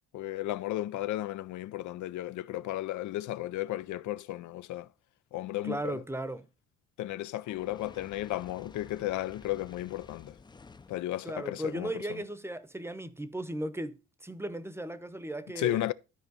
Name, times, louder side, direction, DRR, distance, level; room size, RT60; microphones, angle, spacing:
voice 1, 0.1-4.9 5.3-6.0 7.0-10.3 10.9-11.9 15.6-15.9, left 15 dB, 75° left, 0.5 m, -34 dB
voice 2, 5.6-6.5 11.2-15.9, right 1 dB, 10° right, 0.8 m, -36 dB
Fire, 7.4-11.1, left 4 dB, 15° left, 0.4 m, -52 dB
12.5 x 4.5 x 4.0 m
cardioid pair, 90°, 30 cm